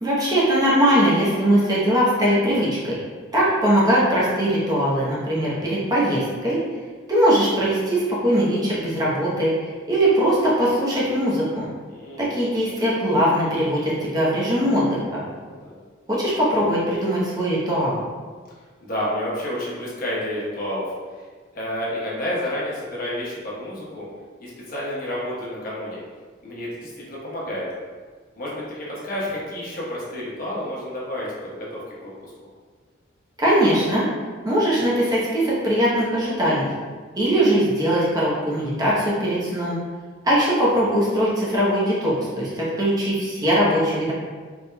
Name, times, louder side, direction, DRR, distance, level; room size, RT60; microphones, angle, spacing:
voice 1, 0.0-3.0 3.3-6.6 7.1-9.5 9.9-11.7 12.2-15.2 16.1-18.0 33.4-34.1 34.4-36.7 37.2-39.8 40.2-44.1, equal, 20° right, -7 dB, 0.8 m, -20 dB
voice 2, 11.9-12.4 15.4-15.8 18.8-20.9 21.5-24.1 24.4-26.0 26.4-27.7 28.4-31.9, left 1 dB, 50° left, -6 dB, 1.0 m, -30 dB
4.3 x 3.5 x 2.2 m, 1.5 s
head